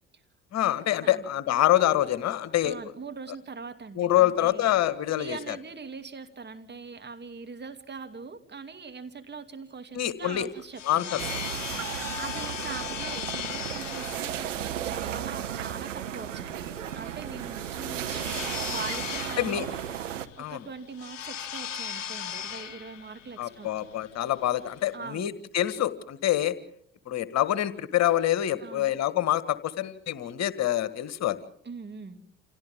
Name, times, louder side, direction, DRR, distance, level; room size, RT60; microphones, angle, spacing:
voice 1, 0.5-2.7 4.0-5.6 9.9-10.5 10.8-11.2 11.7-11.8 19.4-19.7 20.4-20.6 23.4-26.5 27.1-31.4, left 13 dB, 45° left, 15 dB, 1.5 m, -26 dB
voice 2, 2.6-4.7 5.1-11.3 12.2-19.7 20.4-23.7 24.9-25.3 28.6-28.9 31.6-32.2, right 5 dB, 30° right, 7 dB, 2.6 m, -42 dB
sound 1, 10.4-25.0, left 9 dB, 80° left, 0.8 m, -38 dB
sound 2, 11.2-20.3, right 10 dB, 80° right, 1.1 m, -34 dB
29.5 x 27.5 x 3.6 m, 0.65 s
figure-of-eight pair, 55°, 37 cm